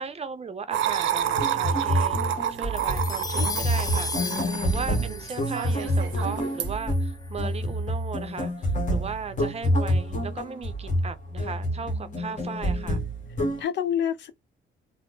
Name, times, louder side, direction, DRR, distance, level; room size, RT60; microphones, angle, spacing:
voice 1, 0.0-13.0, right 5 dB, 30° right, 0.6 m, -37 dB
sound 1, 0.7-6.8, right 10 dB, 75° right, 0.6 m, -29 dB
sound 2, 1.3-13.6, equal, 40° left, 1.3 m, -28 dB
sound 3, 2.8-7.3, left 4 dB, 20° left, 0.4 m, -36 dB
voice 2, 4.1-4.8 13.6-14.3, left 9 dB, 65° left, 0.6 m, -29 dB
3.4 x 2.0 x 3.8 m
cardioid pair, 90°, 20 cm